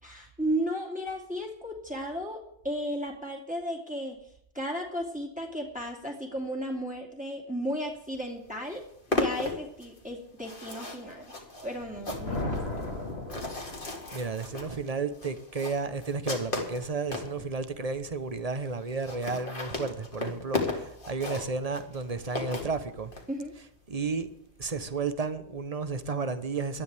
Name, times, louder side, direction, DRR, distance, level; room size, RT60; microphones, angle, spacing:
voice 1, 0.0-2.4 2.6-8.8 9.1-11.3 11.6-12.9 23.3-23.5, equal, 5° right, 2.7 m, -34 dB
sound 1, 8.1-8.2 8.5-17.3 17.9-18.0 18.2-18.3 18.5-18.6 18.9-23.3, left 2 dB, 50° left, 2.5 m, -35 dB
Thunder, 11.6-14.3, left 2 dB, 65° left, 2.4 m, -36 dB
voice 2, 14.1-23.1 23.9-24.3 24.6-26.8, right 4 dB, 35° right, 1.1 m, -32 dB
18.5 x 12.5 x 3.5 m
omnidirectional pair, 1.1 m